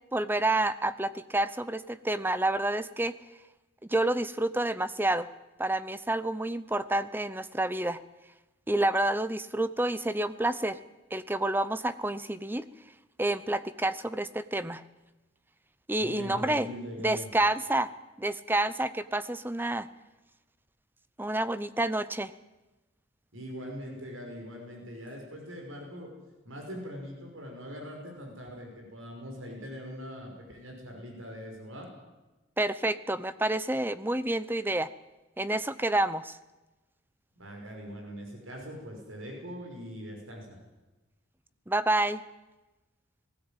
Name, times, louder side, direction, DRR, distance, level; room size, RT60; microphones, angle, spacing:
voice 1, 0.1-3.1 3.8-5.3 5.6-8.0 8.7-10.8 11.1-12.6 13.2-14.8 15.9-16.7 17.0-17.9 18.2-19.9 21.2-22.3 32.6-34.9 35.4-36.4 41.7-42.2, right 1 dB, 10° right, 14 dB, 0.7 m, -29 dB
voice 2, 16.0-17.3 23.3-26.1 26.4-31.9 37.4-40.6, equal, 75° right, 1 dB, 5.6 m, -42 dB
19.5 x 16.5 x 9.0 m, 1.1 s
head